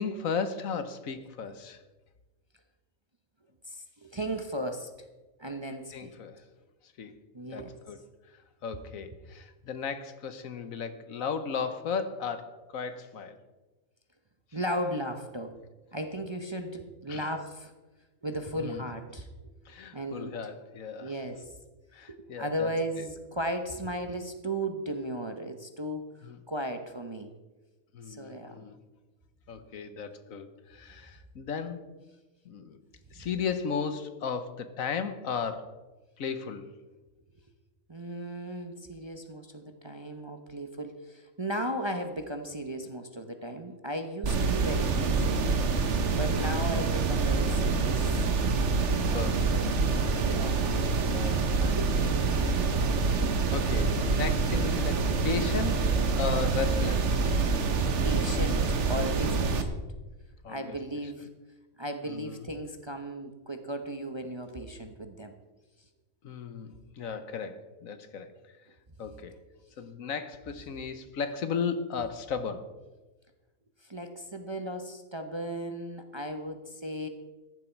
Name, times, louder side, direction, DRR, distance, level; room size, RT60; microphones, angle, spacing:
voice 1, 0.0-1.8 5.9-6.4 6.8-7.2 7.5-8.0 8.2-13.4 17.1-17.3 18.5-18.8 19.6-21.2 21.9-22.7 23.0-23.1 26.2-26.4 27.9-28.8 29.5-31.9 32.4-32.8 33.1-35.8 36.2-36.7 46.5-46.8 49.1-51.8 52.3-52.7 53.5-57.5 60.4-60.8 62.0-62.5 66.2-68.6 69.0-69.4 69.8-72.7, left 6 dB, 70° left, 11 dB, 1.4 m, -36 dB
voice 2, 3.7-4.9 5.4-6.1 7.3-7.7 14.5-15.6 15.9-17.7 18.2-19.3 19.9-20.3 21.0-21.6 22.1-26.0 26.5-27.3 28.1-28.6 33.1-33.2 37.9-45.5 46.1-48.2 48.9-49.3 50.2-50.9 51.8-52.0 58.0-59.8 60.5-61.3 61.8-65.3 73.8-77.1, right 1 dB, 25° right, 6 dB, 0.8 m, -36 dB
sound 1, 44.2-59.6, right 4 dB, 55° right, 1.3 m, -26 dB
14.5 x 11.0 x 4.5 m, 1.2 s
omnidirectional pair, 1.5 m